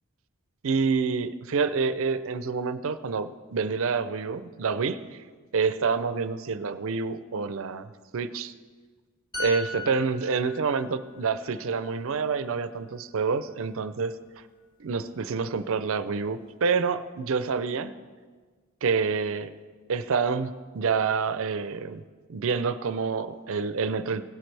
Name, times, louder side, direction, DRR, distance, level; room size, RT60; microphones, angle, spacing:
voice 1, 0.6-5.2 5.5-8.5 9.4-14.2 14.8-17.9 18.8-19.5 19.9-22.0 22.3-24.2, right 5 dB, 65° right, 13 dB, 0.5 m, -27 dB
sound 1, 9.3-12.9 13.3-13.5, left 3 dB, 20° left, 1.7 m, -39 dB
17.5 x 10.5 x 3.3 m, 1.5 s
head